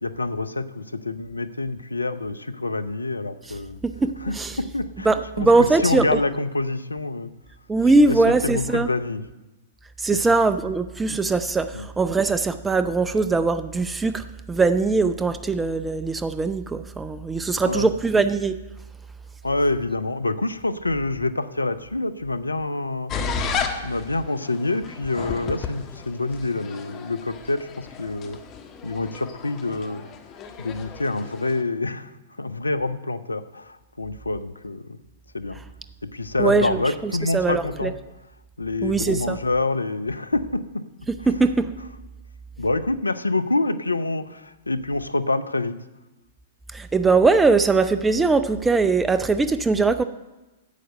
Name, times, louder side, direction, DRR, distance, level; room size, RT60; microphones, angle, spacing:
voice 1, 0.0-3.8 4.2-7.3 8.1-9.2 11.7-11.9 17.6-17.9 19.4-28.4 28.8-30.1 30.6-32.1 32.4-35.0 35.3-35.6 36.1-37.9 38.6-40.8 42.6-45.8, left 2 dB, 90° left, 12 dB, 0.6 m, -27 dB
voice 2, 3.8-4.6 5.1-6.2 7.7-8.9 10.0-18.6 36.4-37.9 38.8-39.4 41.3-41.7 46.7-50.0, right 3 dB, 10° right, 11 dB, 0.5 m, -21 dB
sound 1, 23.1-31.6, left 5 dB, 30° left, 1.3 m, -34 dB
11.5 x 7.8 x 6.5 m, 1.0 s
figure-of-eight pair, 110°, 0 cm